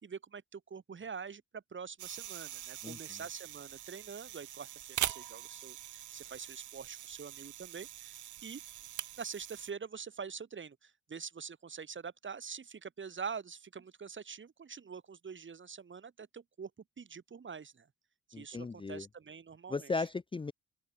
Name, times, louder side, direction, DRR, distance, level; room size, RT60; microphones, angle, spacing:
voice 1, 0.0-8.6 9.2-16.7 17.0-17.9 18.3-19.9, right 6 dB, 40° right, 4.3 m, -45 dB
sound 1, 2.0-9.7, right 13 dB, 80° right, 4.1 m, -43 dB
voice 2, 2.8-3.2 18.3-19.1 19.7-20.5, left 4 dB, 15° left, 0.7 m, -37 dB
open air
cardioid pair, 90°, 30 cm